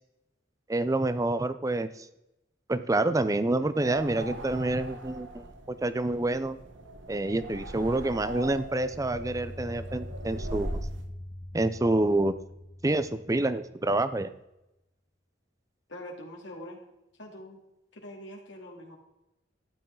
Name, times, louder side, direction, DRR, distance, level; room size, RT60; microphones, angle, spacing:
voice 1, 0.7-2.1 2.7-6.6 7.1-10.8 11.5-12.3 12.8-14.3, right 2 dB, 20° right, 13 dB, 0.5 m, -27 dB
sound 1, 3.7-11.0, right 1 dB, 85° right, 1.3 m, -40 dB
sound 2, 8.7-13.9, left 1 dB, 25° left, 0.7 m, -43 dB
voice 2, 15.9-16.8 17.2-17.6 17.9-19.0, left 1 dB, 70° left, -1 dB, 2.8 m, -43 dB
13.5 x 10.0 x 3.9 m, 0.90 s
head